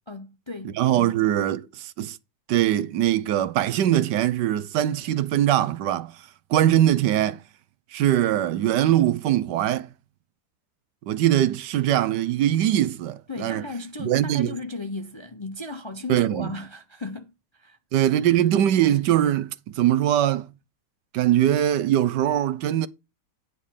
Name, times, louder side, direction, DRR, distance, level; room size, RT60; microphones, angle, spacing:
voice 1, 0.1-1.1 13.3-17.8, left 3 dB, 25° left, 0.7 m, -36 dB
voice 2, 0.8-2.2 2.5-6.2 6.5-7.4 7.9-9.9 11.1-13.6 14.0-14.5 16.1-16.5 17.9-20.5 21.1-22.9, right 12 dB, 75° right, 1.3 m, -22 dB
9.8 x 3.6 x 6.4 m
omnidirectional pair, 1.9 m